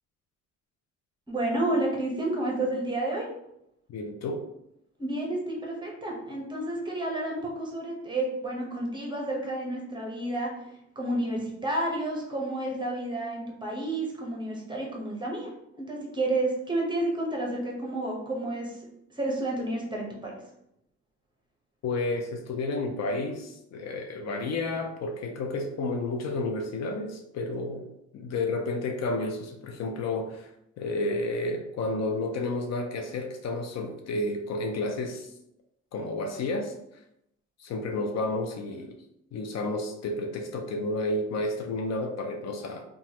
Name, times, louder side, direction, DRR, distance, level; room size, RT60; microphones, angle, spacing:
voice 1, 1.3-3.3 5.0-10.5 11.0-18.8 19.1-20.3, right 1 dB, 15° right, -2 dB, 0.9 m, -30 dB
voice 2, 3.9-4.4 21.8-27.9 28.1-30.5 30.8-35.3 35.9-36.7 37.6-39.0 39.3-42.8, left 2 dB, 60° left, 4 dB, 0.5 m, -31 dB
2.9 x 2.4 x 2.8 m, 0.80 s
cardioid pair, 90°, 30 cm